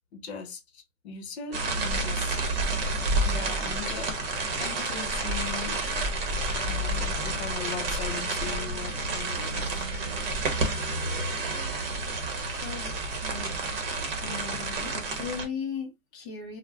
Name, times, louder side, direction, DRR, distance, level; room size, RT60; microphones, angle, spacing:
voice 1, 0.1-2.6 3.2-5.8 6.6-9.9, left 6 dB, 50° left, 0.8 m, -39 dB
sound 1, 1.5-15.4, right 2 dB, 45° right, 0.9 m, -30 dB
voice 2, 12.6-13.9 14.2-16.6, left 6 dB, 20° left, 0.6 m, -38 dB
2.4 x 2.1 x 3.4 m
hypercardioid pair, 160°, 41 cm